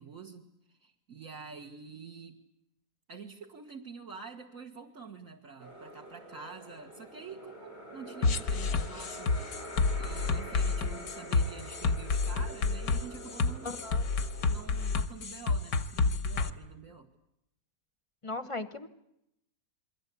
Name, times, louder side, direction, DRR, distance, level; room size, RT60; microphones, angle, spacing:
voice 1, 0.0-2.4 3.1-9.5 10.0-13.8 14.5-17.1, right 5 dB, 50° right, 0 dB, 2.1 m, -47 dB
sound 1, 5.6-14.9, right 1 dB, 70° right, 7.3 m, -46 dB
sound 2, 8.2-16.5, left 4 dB, 90° left, 2.0 m, -29 dB
voice 2, 13.6-14.1 18.2-18.9, left 2 dB, 20° left, 12 dB, 1.0 m, -37 dB
28.5 x 22.5 x 8.5 m, 0.83 s
omnidirectional pair, 1.8 m